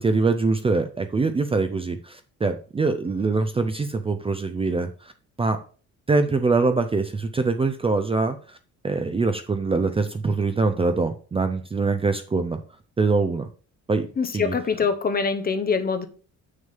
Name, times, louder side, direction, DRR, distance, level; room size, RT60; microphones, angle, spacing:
voice 1, 0.0-5.1 5.4-5.6 6.1-8.6 8.8-12.6 13.0-13.5 13.9-14.1 14.3-14.5, right 3 dB, 15° right, 0.5 m, -23 dB
voice 2, 14.2-16.1, left 5 dB, 30° left, 0.7 m, -24 dB
7.2 x 6.5 x 3.4 m
cardioid pair, 155°, 33 cm